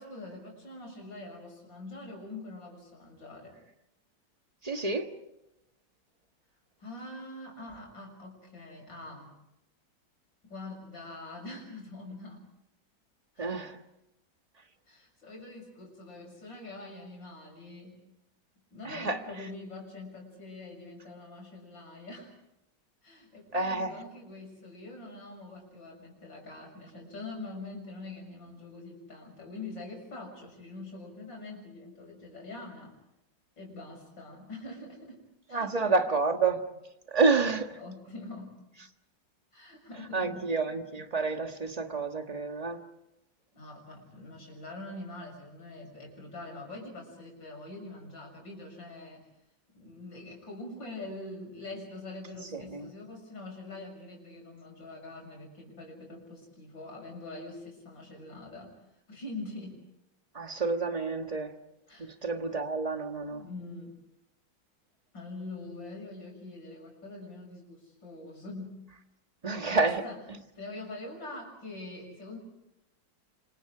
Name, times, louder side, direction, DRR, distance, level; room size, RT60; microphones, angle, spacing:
voice 1, 0.0-3.6 6.8-9.3 10.4-12.5 13.3-13.7 14.9-18.0 18.7-22.3 23.0-32.9 33.6-35.2 35.5-35.9 37.8-38.7 39.5-40.5 43.5-49.3 49.7-58.8 59.1-59.8 61.9-62.1 63.3-64.0 65.1-68.8 69.6-70.2 70.6-72.4, left 2 dB, 85° left, 7.4 m, -44 dB
voice 2, 4.6-5.1 13.4-13.8 18.8-19.2 23.5-23.9 35.5-36.6 37.1-37.8 40.1-42.8 52.5-52.8 60.3-61.5 62.0-63.4 69.4-70.0, right 4 dB, 20° right, 1.5 m, -29 dB
29.0 x 26.5 x 5.0 m
omnidirectional pair, 2.0 m